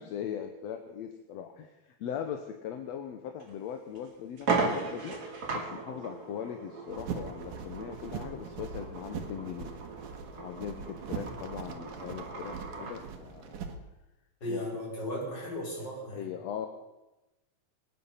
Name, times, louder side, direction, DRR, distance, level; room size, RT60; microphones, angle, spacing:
voice 1, 0.0-5.2 5.5-9.8 10.4-13.6 14.5-14.7 16.1-16.7, left 9 dB, 70° left, 6 dB, 1.9 m, -40 dB
sound 1, 3.4-3.5 3.9-4.0 4.4-13.0, right 3 dB, 35° right, 2.4 m, -37 dB
sound 2, 6.9-13.8, right 6 dB, 80° right, 2.8 m, -41 dB
voice 2, 14.4-16.3, left 1 dB, 35° left, -3 dB, 5.5 m, -36 dB
23.0 x 9.9 x 5.7 m, 1.0 s
omnidirectional pair, 3.6 m